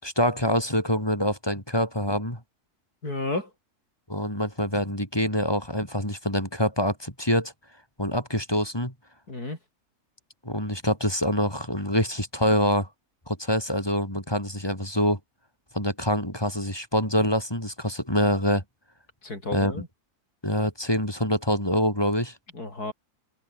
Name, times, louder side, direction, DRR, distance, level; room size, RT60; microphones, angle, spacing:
voice 1, 0.0-2.4 4.1-7.5 8.0-8.9 10.4-12.9 13.3-15.2 15.7-18.6 19.5-19.7 20.4-22.4, equal, 15° left, 7.1 m, -25 dB
voice 2, 3.0-3.5 9.3-9.6 19.2-19.9 22.5-22.9, left 2 dB, 75° left, 6.9 m, -32 dB
omnidirectional pair, 1.6 m